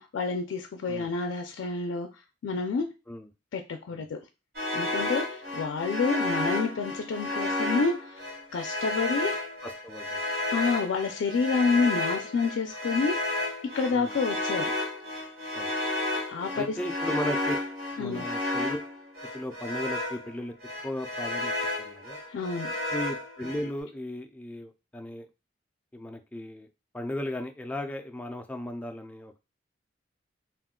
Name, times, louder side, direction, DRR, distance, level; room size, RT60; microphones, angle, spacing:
voice 1, 0.0-2.9 3.5-4.2 4.7-8.3 8.5-9.4 10.5-13.2 13.7-14.7 16.3-16.8 18.0-18.3 22.3-22.7, left 4 dB, 90° left, 4 dB, 0.4 m, -29 dB
sound 1, 4.5-20.3 20.6-23.7, left 1 dB, 55° right, 1.2 m, -32 dB
voice 2, 9.6-10.2 13.9-14.1 15.5-15.7 16.5-17.6 18.0-18.8 19.3-20.5 20.8-21.5 21.8-22.2 22.9-25.3 25.9-26.7 26.9-29.4, left 1 dB, 10° left, 5 dB, 0.3 m, -36 dB
2.4 x 2.2 x 3.6 m, 0.27 s
head